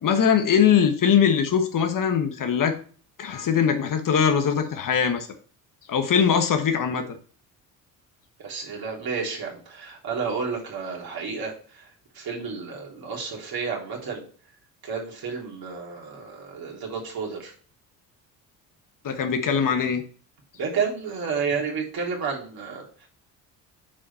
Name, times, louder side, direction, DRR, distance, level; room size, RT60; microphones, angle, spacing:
voice 1, 0.0-2.7 3.2-5.3 5.9-7.0 19.0-20.0, left 7 dB, 50° left, 7 dB, 1.3 m, -21 dB
voice 2, 8.4-11.9 12.1-14.2 14.8-17.5 20.6-23.1, right 5 dB, 55° right, -1 dB, 3.5 m, -31 dB
7.4 x 5.1 x 4.2 m, 0.42 s
supercardioid pair, 65°, 42 cm